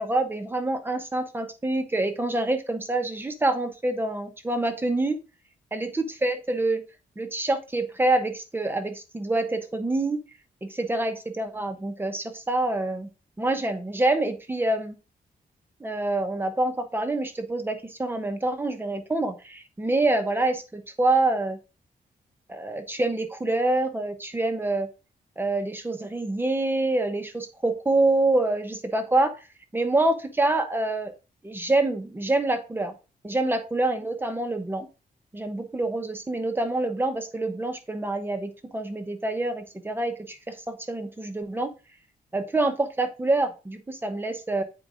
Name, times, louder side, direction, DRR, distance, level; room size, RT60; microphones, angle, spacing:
voice 1, 0.0-5.2 5.7-6.8 7.2-10.2 10.6-13.1 13.4-14.9 15.8-21.6 22.5-24.9 25.4-29.3 29.7-31.1 31.4-32.9 33.2-34.9 35.3-41.7 42.3-44.6, right 2 dB, 15° right, 7 dB, 1.0 m, -26 dB
8.8 x 4.8 x 3.7 m, 0.31 s
wide cardioid pair, 165°, 16 cm